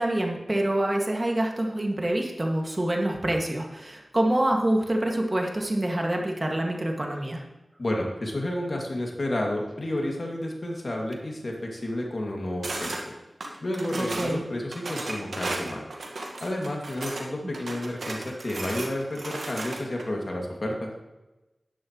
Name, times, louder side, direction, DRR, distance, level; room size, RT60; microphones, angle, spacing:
voice 1, 0.0-7.4 14.0-14.4 17.4-17.5, right 1 dB, 35° right, 1 dB, 2.0 m, -26 dB
voice 2, 7.8-13.1 13.6-15.8 16.4-20.9, left 1 dB, 55° left, 0 dB, 2.3 m, -31 dB
sound 1, 12.6-13.0 13.4-14.3 14.7-17.2 17.5-20.0, right 2 dB, 85° right, 1.6 m, -34 dB
11.0 x 10.5 x 3.1 m, 1.1 s
cardioid pair, 45°, 0 cm